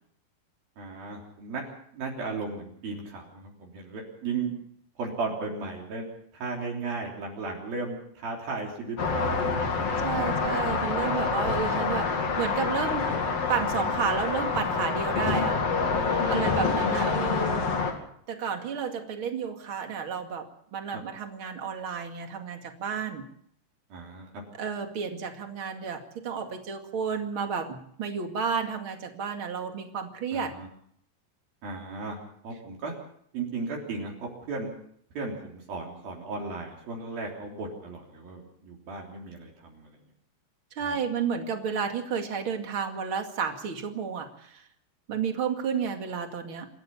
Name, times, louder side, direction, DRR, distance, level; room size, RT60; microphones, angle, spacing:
voice 1, 0.8-1.6 1.9-4.5 5.0-6.1 6.4-9.5 20.9-21.0 23.9-24.4 30.3-30.7 31.6-32.9 33.3-34.7 35.2-40.0 40.8-41.0, right 3 dB, 55° right, -1 dB, 5.1 m, -35 dB
sound 1, 9.0-17.9, left 4 dB, 40° left, 3.1 m, -27 dB
voice 2, 10.0-12.1 12.4-13.1 13.5-15.6 16.3-17.7 18.3-23.3 24.6-30.5 40.7-44.6 45.1-46.7, right 6 dB, 40° right, 5 dB, 2.2 m, -31 dB
28.0 x 13.5 x 7.1 m, 0.67 s
omnidirectional pair, 5.1 m